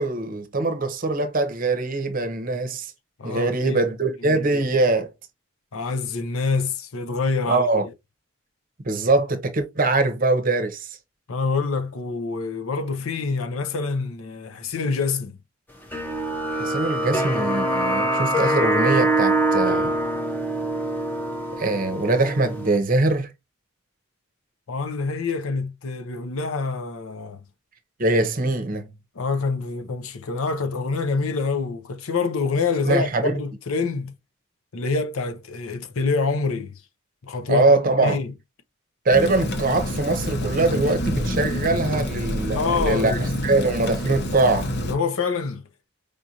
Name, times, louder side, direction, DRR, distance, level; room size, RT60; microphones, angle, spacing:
voice 1, 0.0-2.9 3.2-5.1 7.5-7.9 8.8-11.0 16.5-19.9 21.6-23.3 28.0-28.9 32.8-33.4 37.5-38.2 39.0-44.7, right 2 dB, 40° right, 0.7 m, -22 dB
voice 2, 3.2-3.8 4.2-4.6 5.7-7.7 11.3-15.4 24.7-27.4 29.1-34.1 34.7-36.8 37.2-38.3 42.5-43.2 44.9-45.6, left 4 dB, 75° left, 0.6 m, -26 dB
sound 1, 15.9-22.8, right 1 dB, 10° left, 0.6 m, -24 dB
Rain, 39.1-44.9, equal, 50° left, 0.9 m, -27 dB
5.0 x 2.5 x 2.8 m
head